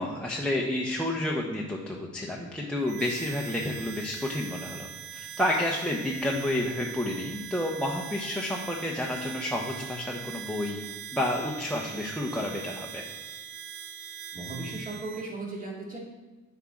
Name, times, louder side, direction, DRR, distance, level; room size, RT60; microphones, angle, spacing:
voice 1, 0.0-10.8 11.1-13.0, left 1 dB, 5° left, 0 dB, 0.8 m, -30 dB
Harmonica, 2.9-15.3, right 8 dB, 80° right, 0.5 m, -42 dB
voice 2, 14.3-16.0, right 2 dB, 25° right, -3 dB, 2.2 m, -36 dB
7.9 x 4.7 x 3.7 m, 1.2 s
cardioid pair, 90°, 30 cm